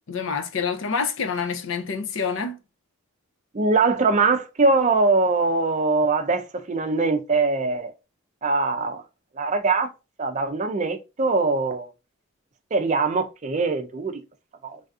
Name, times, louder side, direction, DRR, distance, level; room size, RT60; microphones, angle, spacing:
voice 1, 0.1-2.6, left 5 dB, 60° left, 0.5 m, -27 dB
voice 2, 3.5-7.9 8.4-9.0 9.4-9.9 10.2-11.9 12.7-14.2 14.6-14.8, right 3 dB, 35° right, 0.4 m, -22 dB
3.3 x 2.7 x 2.3 m
head